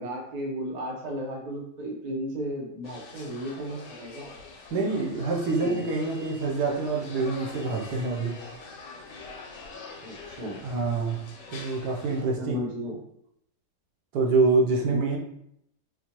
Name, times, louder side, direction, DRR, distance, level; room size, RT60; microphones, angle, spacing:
voice 1, 0.0-4.3 5.6-5.8 10.0-10.6 12.4-13.0 14.9-15.2, equal, 60° right, -1 dB, 0.4 m, -34 dB
sound 1, 2.8-12.2, left 4 dB, 85° left, 1.3 m, -44 dB
voice 2, 4.7-8.4 10.6-11.2 11.5-12.6 14.1-15.2, right 3 dB, 75° right, 0 dB, 1.2 m, -26 dB
4.3 x 2.2 x 2.8 m, 0.74 s
omnidirectional pair, 1.8 m